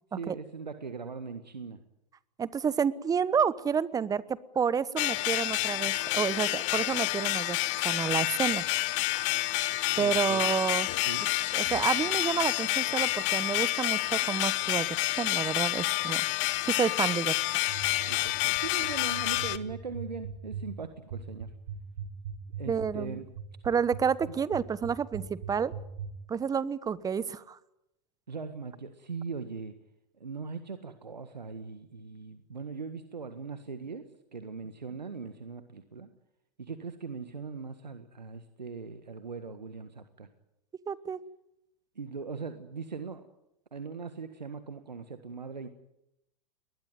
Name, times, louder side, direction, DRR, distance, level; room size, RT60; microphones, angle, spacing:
voice 1, 0.1-1.8 9.9-10.4 11.0-11.2 18.1-21.5 22.6-23.2 24.3-24.4 28.3-29.7 30.1-36.1 36.6-40.3 41.9-43.3 43.7-45.7, right 5 dB, 90° right, 9 dB, 1.6 m, -40 dB
voice 2, 2.4-7.6 7.8-8.6 10.0-10.9 11.5-14.9 15.2-16.2 16.7-17.3 22.7-23.2 23.7-25.7 26.3-27.6 40.9-41.2, right 6 dB, 15° right, 19 dB, 1.0 m, -29 dB
sound 1, 5.0-19.6, left 19 dB, 45° left, 1.2 m, -29 dB
sound 2, 17.7-26.1, right 9 dB, 65° right, 3.6 m, -39 dB
21.0 x 20.5 x 9.5 m, 0.85 s
hypercardioid pair, 105°, 21 cm